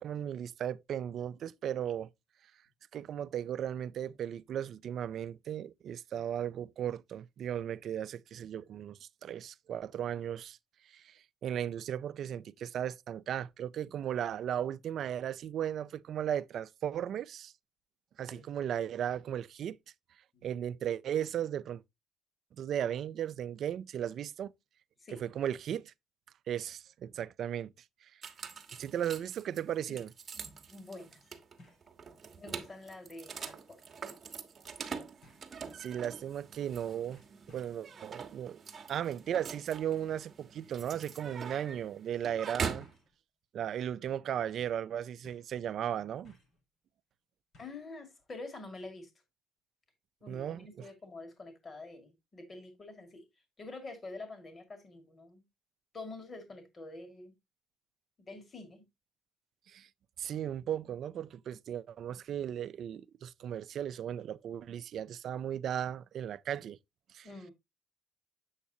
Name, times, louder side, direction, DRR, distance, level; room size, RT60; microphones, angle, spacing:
voice 1, 0.0-2.1 2.9-10.6 10.9-17.5 18.2-19.8 20.4-21.8 22.6-24.5 25.1-25.9 26.5-27.7 28.0-28.1 28.8-30.1 35.7-37.2 37.5-38.6 38.9-42.9 43.5-46.3 50.3-50.9 59.7-59.9 60.2-66.8 67.1-67.3, right 10 dB, 55° right, 0.4 m, -36 dB
sound 1, 28.2-43.0, right 6 dB, 30° right, 1.2 m, -44 dB
voice 2, 30.7-31.2 32.4-33.8 47.6-49.1 50.2-53.2 53.6-55.4 55.9-57.3 58.2-58.9 67.2-67.5, left 2 dB, 25° left, 1.9 m, -47 dB
sound 2, 31.6-31.9 32.4-32.5 33.4-33.7 35.2-35.6 36.5-36.8 37.1-37.9 39.5-39.8 40.8-40.9 41.3-41.5 42.8-43.2 43.6-43.9 44.2-44.3 45.2-45.6 46.2-46.6 47.5-47.9 48.2-48.3, left 1 dB, 55° left, 5.1 m, -61 dB
8.4 x 7.3 x 2.7 m
cardioid pair, 135°, 0 cm